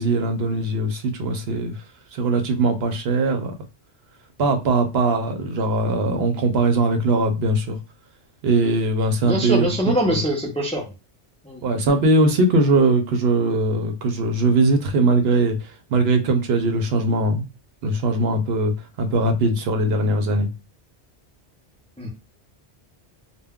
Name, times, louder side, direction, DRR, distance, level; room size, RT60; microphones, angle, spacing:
voice 1, 0.0-1.8 2.1-3.5 4.4-7.8 8.4-9.7 10.1-10.2 11.6-17.5 17.8-20.5, right 2 dB, 70° right, 0.8 m, -20 dB
voice 2, 9.2-10.9 11.4-11.7 22.0-22.1, right 1 dB, 10° left, 0.4 m, -23 dB
2.2 x 2.2 x 3.5 m
omnidirectional pair, 1.1 m